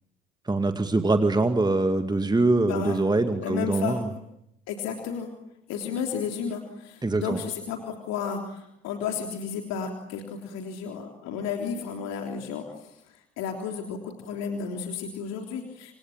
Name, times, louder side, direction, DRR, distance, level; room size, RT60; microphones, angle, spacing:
voice 1, 0.5-4.1 7.0-7.4, right 2 dB, 15° right, 8 dB, 2.2 m, -23 dB
voice 2, 2.6-3.0 3.4-4.2 4.7-5.3 5.7-15.9, left 6 dB, 55° left, 3 dB, 3.5 m, -33 dB
28.5 x 28.0 x 7.5 m, 0.81 s
figure-of-eight pair, 55°, 30 cm